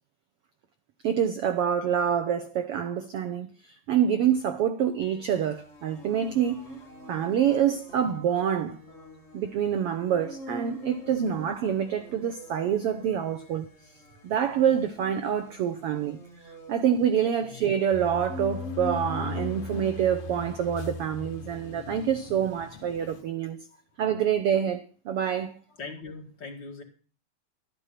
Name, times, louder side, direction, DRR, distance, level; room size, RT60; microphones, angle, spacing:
voice 1, 1.0-6.6 7.1-8.8 9.3-13.7 14.2-16.2 16.4-23.6 24.0-25.6, right 9 dB, 80° right, 1.3 m, -26 dB
sound 1, 5.0-21.6, right 1 dB, 25° left, 2.2 m, -44 dB
sound 2, 17.9-23.2, left 8 dB, 80° left, 1.2 m, -39 dB
voice 2, 25.7-26.8, left 4 dB, 40° left, 2.4 m, -41 dB
13.0 x 9.9 x 5.8 m
omnidirectional pair, 3.7 m